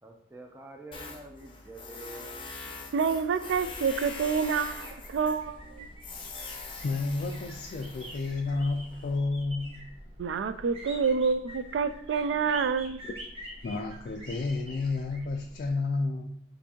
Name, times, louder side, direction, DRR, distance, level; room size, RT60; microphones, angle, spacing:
voice 1, 0.0-2.4, right 1 dB, 15° right, 2 dB, 0.6 m, -46 dB
Tools, 0.9-9.2, left 3 dB, 30° left, 0.7 m, -43 dB
voice 2, 2.9-5.9 10.2-13.0, right 5 dB, 75° right, 12 dB, 0.3 m, -28 dB
sound 1, 3.5-15.7, equal, 30° right, 1.2 m, -47 dB
voice 3, 6.8-9.8 13.6-16.3, left 3 dB, 55° left, 3 dB, 0.3 m, -31 dB
6.8 x 2.6 x 2.9 m, 0.71 s
head